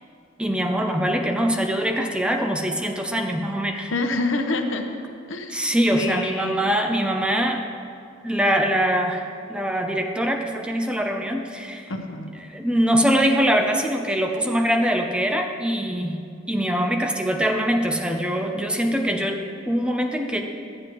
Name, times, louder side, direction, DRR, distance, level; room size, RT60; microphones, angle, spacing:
voice 1, 0.4-3.9 5.5-7.7 8.2-11.9 12.4-16.2 16.5-19.4 19.7-20.4, equal, 5° right, 3 dB, 0.5 m, -23 dB
voice 2, 3.9-4.9 5.3-6.8 11.9-12.3, left 2 dB, 90° left, 5 dB, 0.8 m, -27 dB
13.0 x 8.6 x 3.0 m, 2.3 s
head